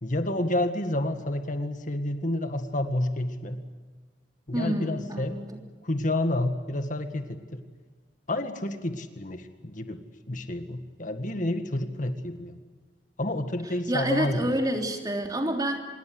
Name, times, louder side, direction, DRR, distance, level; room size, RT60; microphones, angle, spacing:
voice 1, 0.0-3.6 4.5-5.4 5.8-7.6 8.3-10.0 10.3-12.5 13.2-14.5, left 1 dB, 50° left, 7 dB, 1.9 m, -29 dB
voice 2, 4.5-5.6 13.9-15.8, right 1 dB, 20° right, 3 dB, 3.6 m, -28 dB
26.0 x 22.0 x 7.9 m, 1.4 s
head